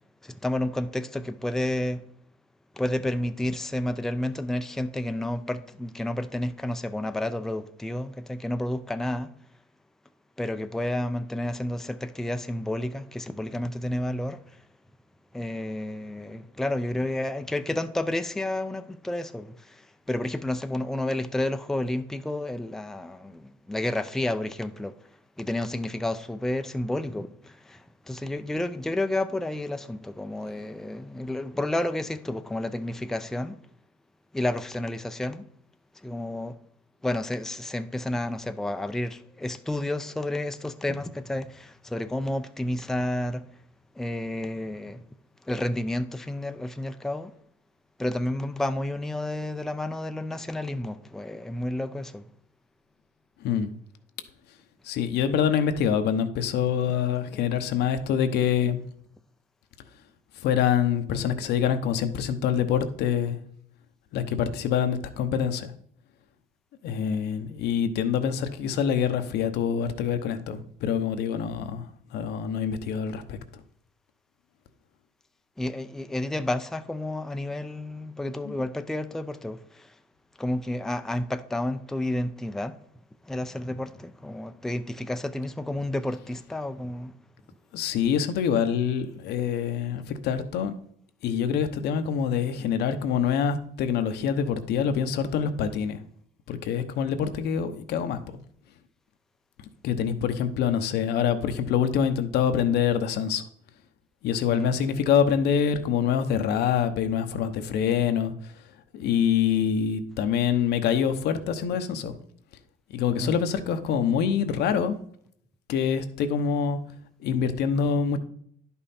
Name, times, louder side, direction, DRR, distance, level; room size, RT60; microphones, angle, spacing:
voice 1, 0.2-2.0 2.7-9.3 10.4-14.6 15.3-25.0 25.4-33.6 34.3-35.4 36.0-36.6 37.0-43.4 44.0-45.0 45.4-47.3 48.0-52.3 75.6-79.9 80.4-82.8 83.2-87.1 104.5-104.8 113.2-113.4, left 1 dB, 5° left, 0.5 m, -30 dB
voice 2, 53.4-53.7 54.8-58.8 60.4-63.4 64.1-65.7 66.8-73.4 78.4-78.5 87.7-90.7 91.2-96.0 96.5-98.4 99.8-103.4 104.2-108.5 108.9-112.2 112.9-115.0 115.7-116.8 117.2-118.2, left 8 dB, 75° left, 0.9 m, -25 dB
10.5 x 5.6 x 4.2 m
cardioid pair, 110°, 17 cm